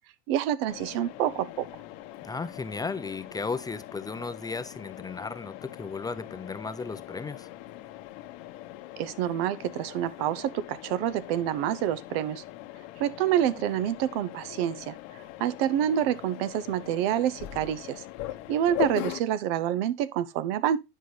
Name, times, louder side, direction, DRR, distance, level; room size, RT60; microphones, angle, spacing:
voice 1, 0.3-1.7 9.0-12.4 13.0-14.9 15.4-18.0 18.5-20.8, right 11 dB, 75° right, 0.7 m, -27 dB
Mechanisms, 0.7-19.2, left 15 dB, 65° left, 1.0 m, -41 dB
voice 2, 2.2-7.5, left 4 dB, 10° left, 0.5 m, -35 dB
10.0 x 5.4 x 3.1 m
supercardioid pair, 115°, 30 cm